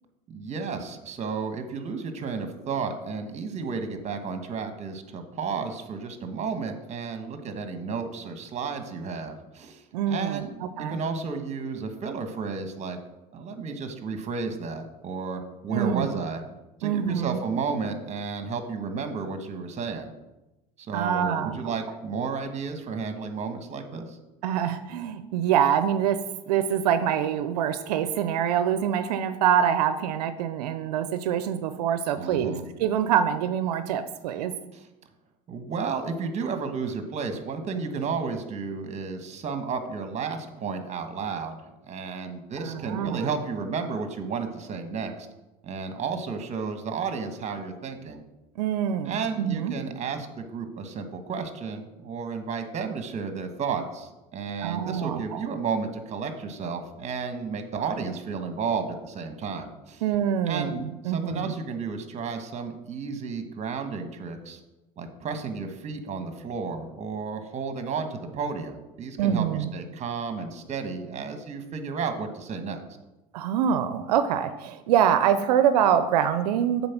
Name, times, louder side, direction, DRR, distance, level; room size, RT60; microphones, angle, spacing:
voice 1, 0.3-13.0 13.3-16.4 16.8-20.1 20.8-24.2 32.2-32.6 34.7-34.9 35.5-41.6 41.9-45.3 45.6-48.2 49.0-60.0 60.5-60.7 61.0-64.6 65.0-72.8, right 5 dB, 35° right, 7 dB, 1.2 m, -32 dB
voice 2, 9.9-11.0 15.7-16.1 16.8-17.4 20.9-21.7 24.4-34.5 42.6-43.3 48.6-49.7 54.6-55.4 60.0-61.5 69.2-69.7 73.3-76.9, right 9 dB, 90° right, 11 dB, 0.5 m, -25 dB
7.6 x 4.1 x 5.9 m, 1.0 s
supercardioid pair, 90°, 20 cm